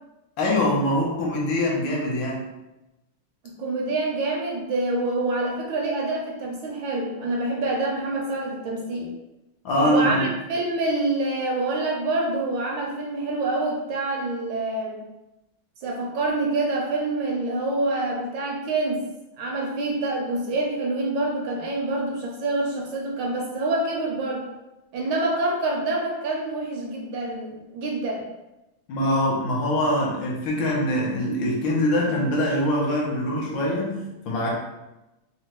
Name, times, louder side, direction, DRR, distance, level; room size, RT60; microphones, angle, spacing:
voice 1, 0.4-2.4 9.6-10.3 28.9-34.5, left 1 dB, 70° left, -2 dB, 1.3 m, -23 dB
voice 2, 3.4-9.1 9.8-15.0 15.8-19.0 19.4-24.5 24.9-28.3, right 2 dB, 75° right, -1 dB, 1.2 m, -26 dB
3.5 x 2.1 x 2.9 m, 0.97 s
omnidirectional pair, 2.3 m